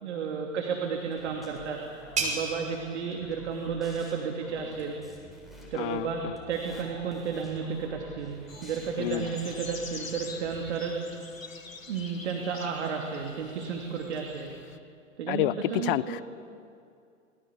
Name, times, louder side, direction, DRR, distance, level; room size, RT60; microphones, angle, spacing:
voice 1, 0.0-5.0 5.7-8.4 8.6-11.0 11.9-14.5 15.2-16.2, right 6 dB, 60° right, 1 dB, 2.9 m, -32 dB
sound 1, 0.8-6.2, right 3 dB, 20° right, 5.4 m, -39 dB
sound 2, 1.1-10.7, equal, ahead, 7.7 m, -50 dB
voice 2, 5.7-6.4 9.0-9.3 15.3-16.2, left 15 dB, 45° left, 18 dB, 0.8 m, -29 dB
sound 3, 8.5-14.8, left 4 dB, 85° left, 1.5 m, -45 dB
27.5 x 20.5 x 8.3 m, 2.4 s
figure-of-eight pair, 95°, 38 cm